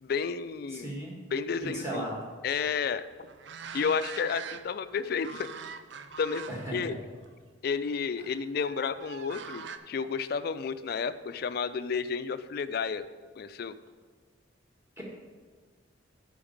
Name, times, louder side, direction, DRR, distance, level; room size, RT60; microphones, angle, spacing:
voice 1, 0.0-0.9 1.3-2.0 2.4-3.0 3.7-5.5 6.2-7.0 7.6-13.0 13.4-13.8, left 6 dB, 55° left, 13 dB, 0.3 m, -31 dB
voice 2, 0.7-1.2 1.6-2.2 6.5-7.0 8.2-8.3 15.0-15.1, right 1 dB, 15° right, -3 dB, 1.7 m, -36 dB
sound 1, 2.6-4.9 5.2-6.8 7.2-7.3 8.6-9.8, right 6 dB, 65° right, 0.5 m, -43 dB
8.8 x 5.2 x 5.2 m, 1.5 s
head